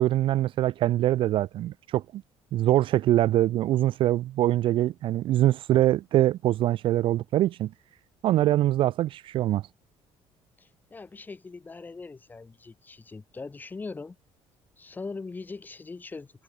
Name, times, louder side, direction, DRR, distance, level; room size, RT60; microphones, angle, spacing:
voice 1, 0.0-2.2 2.5-7.7 8.2-9.6, right 14 dB, 50° right, 0.4 m, -23 dB
voice 2, 10.6-14.2 14.8-16.3, left 4 dB, 15° left, 5.0 m, -41 dB
cardioid pair, 165°, 11 cm